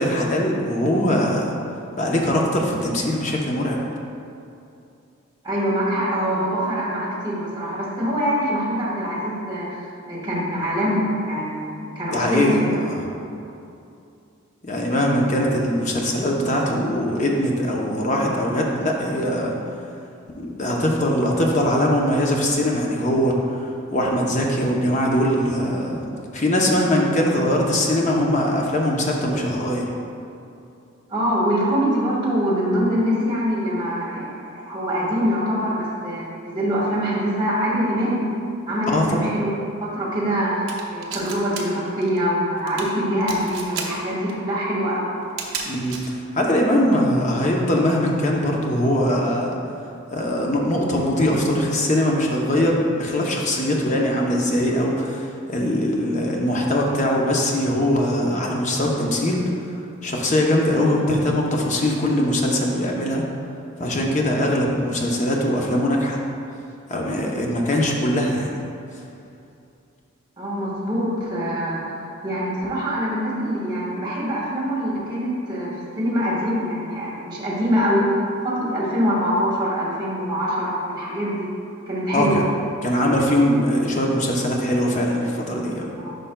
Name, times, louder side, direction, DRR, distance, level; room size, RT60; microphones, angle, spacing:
voice 1, 0.0-1.5 2.0-3.8 12.1-12.6 12.9-13.1 14.6-19.5 20.4-23.3 23.9-26.0 26.3-29.9 38.9-39.2 45.7-46.0 46.3-49.6 50.1-59.4 60.0-63.2 63.8-66.2 66.9-68.5 82.1-82.4 82.8-85.9, left 1 dB, 35° left, -1 dB, 0.7 m, -21 dB
voice 2, 5.4-9.8 10.0-12.5 12.7-12.8 31.1-34.3 34.7-38.2 38.7-40.6 40.9-45.1 70.4-75.7 76.0-78.1 78.4-81.5 81.9-82.4 85.9-86.1, equal, 20° right, -8 dB, 1.4 m, -24 dB
sound 1, 40.7-41.6 41.9-42.2 42.6-42.9 43.2-43.8 44.3-44.4 45.2-46.1, right 6 dB, 60° right, 0.7 m, -31 dB
9.9 x 5.1 x 2.2 m, 2.6 s
head